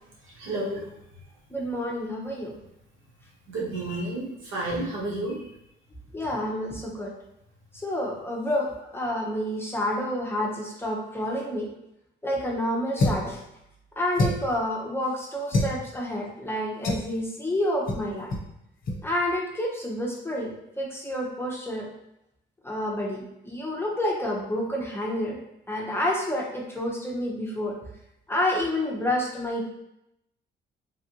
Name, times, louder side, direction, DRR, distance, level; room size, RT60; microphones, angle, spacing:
voice 1, 0.2-0.9 3.5-5.5, right 2 dB, 90° right, -4 dB, 1.2 m, -31 dB
voice 2, 1.5-2.5 6.1-7.1 7.8-11.7 12.2-13.4 14.0-18.3 19.0-20.5 20.8-21.9 22.6-23.2 23.4-25.4 25.7-27.7 28.3-29.7, left 1 dB, 10° left, -2 dB, 0.8 m, -29 dB
sound 1, 13.0-13.3 14.1-14.6 15.5-15.8 16.8-17.1 17.9-18.0 18.3-18.5 18.8-19.0, left 1 dB, 45° left, 0.8 m, -25 dB
3.3 x 2.4 x 2.9 m, 0.82 s
cardioid pair, 90°, 20 cm